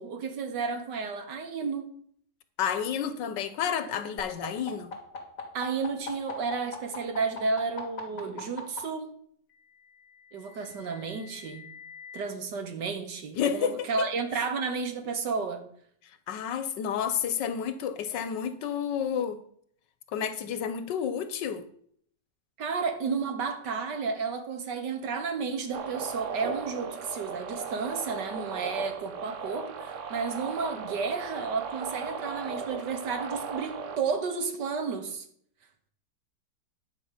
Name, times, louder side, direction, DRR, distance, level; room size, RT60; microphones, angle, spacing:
voice 1, 0.0-1.9 5.5-9.1 10.3-11.7 12.1-15.7 22.6-35.2, right 4 dB, 75° right, 1.9 m, -32 dB
voice 2, 2.6-4.9 13.4-14.1 16.3-19.4 20.1-21.6, left 8 dB, 80° left, 1.5 m, -30 dB
sound 1, 4.2-8.8 9.9-12.2, left 4 dB, 50° left, 2.5 m, -41 dB
sound 2, 25.7-34.0, right 6 dB, 55° right, 1.0 m, -37 dB
10.5 x 4.9 x 7.3 m
omnidirectional pair, 1.9 m